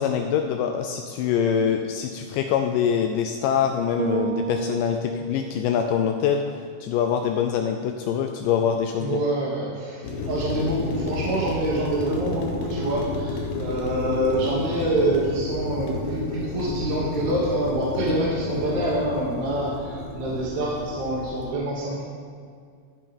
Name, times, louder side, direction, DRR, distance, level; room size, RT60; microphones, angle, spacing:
voice 1, 0.0-6.4 6.8-9.2, left 8 dB, 80° left, 4 dB, 2.0 m, -24 dB
Bass guitar, 4.0-6.3, right 6 dB, 85° right, 1.6 m, -31 dB
voice 2, 9.0-22.0, right 1 dB, 60° right, -6 dB, 2.5 m, -26 dB
sound 1, 10.0-21.5, left 2 dB, 65° left, 1.8 m, -31 dB
12.5 x 5.6 x 5.3 m, 2.1 s
omnidirectional pair, 4.0 m